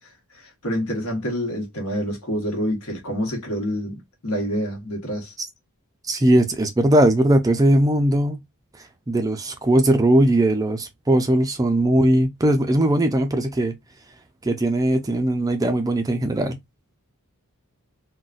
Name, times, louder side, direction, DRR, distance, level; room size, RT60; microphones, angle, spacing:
voice 1, 0.6-5.3, equal, 70° left, 1.2 m, -27 dB
voice 2, 6.1-8.4 9.1-13.7 14.4-16.6, right 1 dB, 15° right, 0.4 m, -19 dB
3.9 x 2.2 x 2.4 m
head